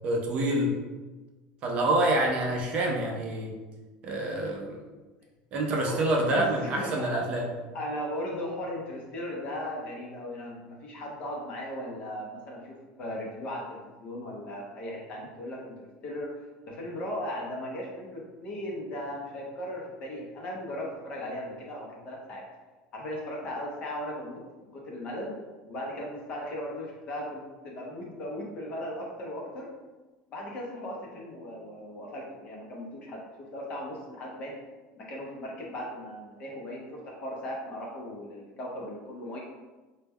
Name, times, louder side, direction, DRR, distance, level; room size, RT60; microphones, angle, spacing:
voice 1, 0.0-0.7 1.6-3.5 4.0-4.8 5.5-7.5, right 1 dB, 35° right, 0 dB, 0.4 m, -27 dB
voice 2, 6.3-7.2 7.7-16.3 16.7-22.4 22.9-24.4 24.7-25.3 25.7-29.7 30.3-34.6 35.0-39.4, left 1 dB, 35° left, -2 dB, 0.6 m, -37 dB
2.1 x 2.1 x 3.4 m, 1.2 s
cardioid pair, 155°, 3 cm